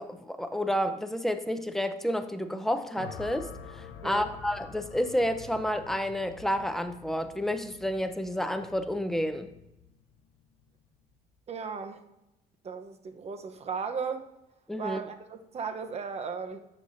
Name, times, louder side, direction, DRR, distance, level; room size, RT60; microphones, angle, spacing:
voice 1, 0.0-9.5 14.7-15.0, equal, ahead, 8 dB, 0.7 m, -30 dB
sound 1, 2.9-11.2, left 7 dB, 85° left, 0.7 m, -48 dB
voice 2, 11.5-12.1 12.6-14.3 14.8-16.6, right 5 dB, 40° right, 7 dB, 0.9 m, -36 dB
11.5 x 7.3 x 2.7 m, 0.93 s
cardioid pair, 110°, 17 cm